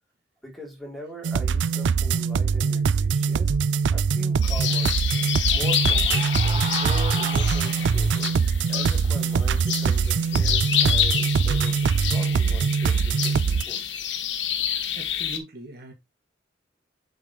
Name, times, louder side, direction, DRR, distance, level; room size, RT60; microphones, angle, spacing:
voice 1, 0.4-3.6 3.9-8.3 8.7-13.8, equal, ahead, 3.2 m, -41 dB
sound 1, 1.2-13.6, right 5 dB, 80° right, 0.4 m, -23 dB
sound 2, 4.4-15.4, left 9 dB, 80° left, 1.3 m, -28 dB
sound 3, 5.2-8.2, right 5 dB, 35° right, 0.7 m, -36 dB
voice 2, 14.9-15.9, right 2 dB, 60° right, 1.8 m, -40 dB
8.0 x 5.7 x 3.0 m
head